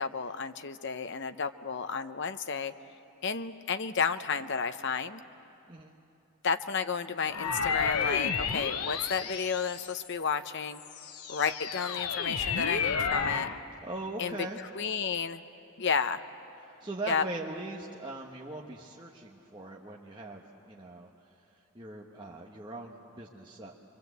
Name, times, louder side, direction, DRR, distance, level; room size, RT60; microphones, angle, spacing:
voice 1, 0.0-2.7 3.2-5.2 6.4-10.8 11.3-13.5 14.2-14.4 14.8-15.4 15.8-16.2 17.1-17.2, left 6 dB, 55° left, 10 dB, 0.7 m, -32 dB
sound 1, 7.3-10.2 10.8-13.6, left 5 dB, 90° left, 1.0 m, -31 dB
voice 2, 13.8-14.6 16.6-21.1 21.7-23.8, right 2 dB, 20° right, -2 dB, 1.1 m, -40 dB
25.5 x 23.5 x 8.0 m, 2.8 s
head